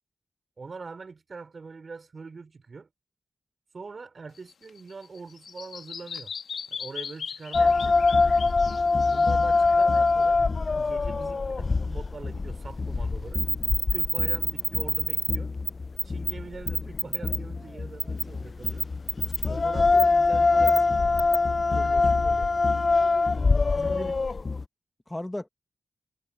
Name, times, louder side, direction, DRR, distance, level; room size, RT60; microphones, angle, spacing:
voice 1, 0.6-2.9 3.7-6.3 6.7-8.0 9.0-10.4 10.8-13.4 13.9-15.5 16.0-18.9 19.5-21.1 21.6-22.7 23.8-24.1, right 4 dB, 55° right, 5.3 m, -42 dB
Bird vocalization bird call bird song, 4.3-10.2, left 6 dB, 80° left, 1.5 m, -39 dB
sound 1, 7.5-24.7, left 3 dB, 50° left, 0.4 m, -24 dB
sound 2, 13.3-15.4 15.7-15.8 16.0-16.3 16.7-17.4 18.0-18.2 18.6-19.5 20.0-20.1 20.7-20.8 21.2-21.3, right 3 dB, 40° right, 1.2 m, -27 dB
voice 2, 23.3-24.2 25.1-25.5, left 1 dB, 20° left, 1.5 m, -37 dB
supercardioid pair, 40°, 0 cm